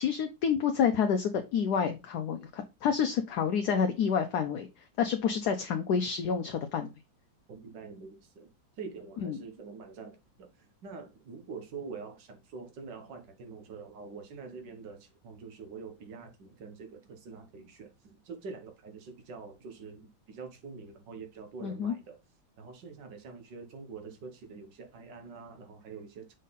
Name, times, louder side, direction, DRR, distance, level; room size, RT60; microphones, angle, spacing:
voice 1, 0.0-4.7 5.0-6.9 9.2-9.4 21.6-21.9, left 7 dB, 70° left, 1.1 m, -28 dB
voice 2, 7.5-8.5 8.8-22.2 22.6-26.4, right 5 dB, 70° right, 1.8 m, -45 dB
6.3 x 3.9 x 4.0 m
omnidirectional pair, 2.0 m